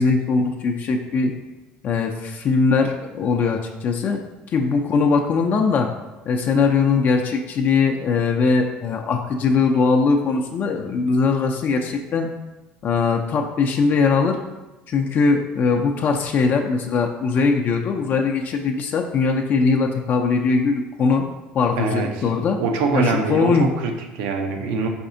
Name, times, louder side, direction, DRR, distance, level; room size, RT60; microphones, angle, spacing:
voice 1, 0.0-1.3 1.8-4.2 4.5-5.9 6.3-12.3 12.8-14.4 14.9-21.3 21.5-22.6 22.9-23.7, left 4 dB, 50° left, 3 dB, 0.4 m, -20 dB
voice 2, 21.8-22.3 22.6-24.9, right 3 dB, 70° right, 4 dB, 0.6 m, -23 dB
4.7 x 4.2 x 2.6 m, 1.1 s
hypercardioid pair, 70°, 4 cm